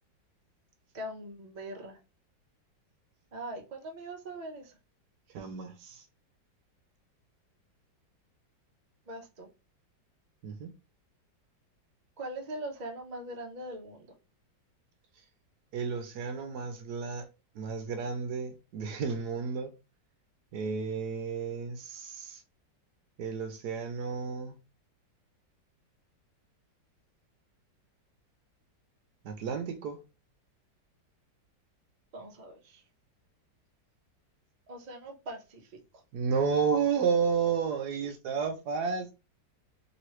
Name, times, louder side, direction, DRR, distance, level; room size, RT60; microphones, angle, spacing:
voice 1, 0.9-2.0 3.3-4.8 9.1-9.5 12.2-14.1 32.1-32.8 34.7-35.8, right 1 dB, 55° right, 0.4 m, -41 dB
voice 2, 5.3-6.1 10.4-10.7 15.7-17.3 17.5-19.7 20.5-22.4 23.2-24.6 29.2-30.0 36.1-39.1, right 6 dB, 75° right, 1.0 m, -32 dB
3.0 x 3.0 x 3.0 m
omnidirectional pair, 2.0 m